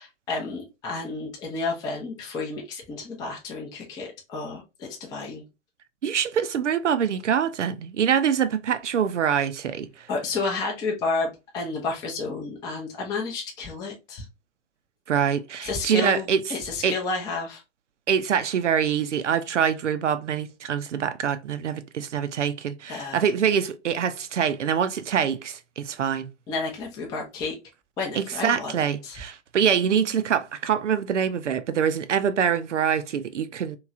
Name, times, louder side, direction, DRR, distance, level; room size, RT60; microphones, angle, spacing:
voice 1, 0.0-5.4 10.1-14.3 15.6-17.6 22.9-23.2 26.5-27.6 28.0-29.2, left 3 dB, 10° left, 0.4 m, -31 dB
voice 2, 6.0-10.1 15.1-16.4 16.8-16.9 18.1-26.3 28.1-33.8, right 8 dB, 85° right, 0.6 m, -25 dB
3.0 x 2.9 x 2.4 m
figure-of-eight pair, 115°, 35 cm